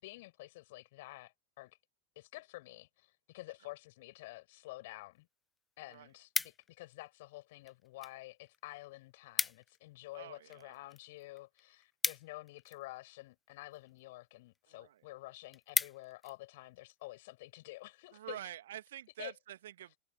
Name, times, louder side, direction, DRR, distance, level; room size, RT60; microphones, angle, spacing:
voice 1, 0.0-1.8 2.2-5.3 5.8-18.4 19.2-19.3, left 19 dB, 50° left, 5.5 m, -50 dB
sound 1, 5.2-5.3 5.6-6.9 7.6-8.2 8.5-8.6 8.8-8.9 9.2-9.8 10.1-13.0 13.7-14.0 14.5-14.6 15.0-15.1 15.4-16.4 16.8-17.1, left 4 dB, 15° left, 0.5 m, -37 dB
voice 2, 10.1-10.9 14.7-15.0 18.1-20.0, right 12 dB, 60° right, 2.4 m, -48 dB
figure-of-eight pair, 90°, 0 cm